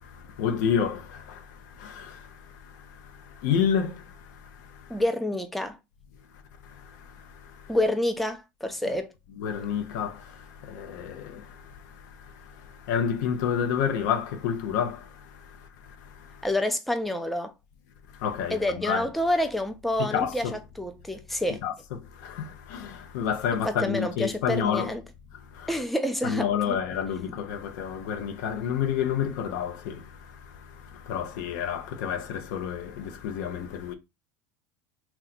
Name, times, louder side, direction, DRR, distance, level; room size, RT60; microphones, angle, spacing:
voice 1, 0.0-5.0 6.6-7.8 9.4-16.5 18.1-19.1 20.0-20.6 21.6-24.9 25.5-25.8 26.2-33.9, left 8 dB, 70° left, 0.7 m, -30 dB
voice 2, 4.9-5.8 7.7-9.1 16.4-17.5 18.5-21.6 23.6-25.0 25.7-26.8, left 1 dB, ahead, 0.5 m, -28 dB
2.9 x 2.3 x 4.0 m
hypercardioid pair, 90°, 10 cm